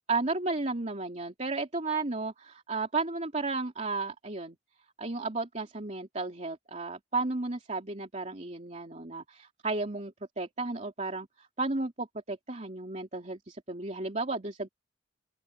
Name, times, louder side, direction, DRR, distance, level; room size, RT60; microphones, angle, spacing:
voice 1, 0.1-4.6 5.0-14.7, right 3 dB, 40° right, 3.0 m, -33 dB
open air
head